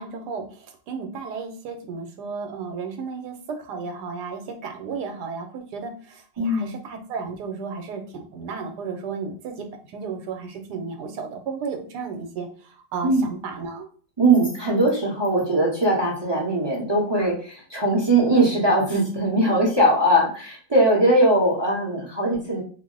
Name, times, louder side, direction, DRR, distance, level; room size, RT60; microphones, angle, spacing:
voice 1, 0.0-13.9, right 5 dB, 85° right, 5 dB, 1.2 m, -34 dB
voice 2, 6.4-6.7 13.0-13.3 14.2-22.6, right 1 dB, 35° right, -4 dB, 0.4 m, -20 dB
2.8 x 2.0 x 3.7 m, 0.44 s
omnidirectional pair, 1.8 m